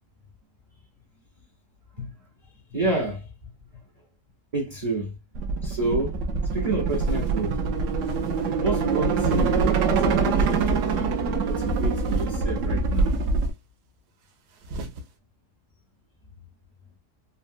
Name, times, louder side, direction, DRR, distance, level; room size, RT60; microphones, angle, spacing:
voice 1, 2.7-3.3 4.5-5.2 5.6-6.2 6.5-7.6 8.6-13.2, right 2 dB, 40° right, 0.5 m, -29 dB
sound 1, 5.3-13.5, right 4 dB, 70° right, 0.8 m, -24 dB
sound 2, 6.9-7.4 7.9-8.5 9.1-9.7 10.3-11.0 11.5-12.4 12.9-13.5 14.5-15.0, right 1 dB, 85° right, 1.2 m, -38 dB
3.6 x 2.0 x 2.5 m
omnidirectional pair, 1.7 m